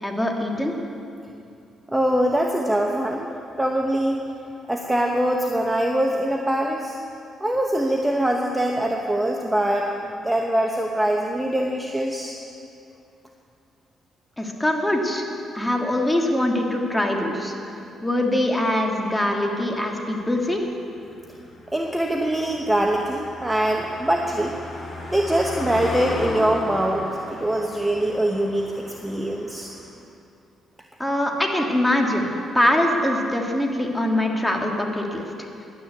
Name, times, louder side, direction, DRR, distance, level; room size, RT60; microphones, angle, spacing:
voice 1, 0.0-0.7 14.4-15.3 15.5-17.5 18.0-20.7 31.0-32.3 32.5-35.5, left 1 dB, 10° left, 1 dB, 1.9 m, -23 dB
voice 2, 1.9-3.3 3.6-4.2 4.7-7.0 7.4-12.4 21.7-24.5 25.1-29.7, right 1 dB, 10° right, 1 dB, 0.9 m, -23 dB
Car passing by, 18.7-29.9, left 1 dB, 45° left, 3.5 m, -36 dB
11.5 x 9.6 x 8.2 m, 2.6 s
cardioid pair, 90°, 0 cm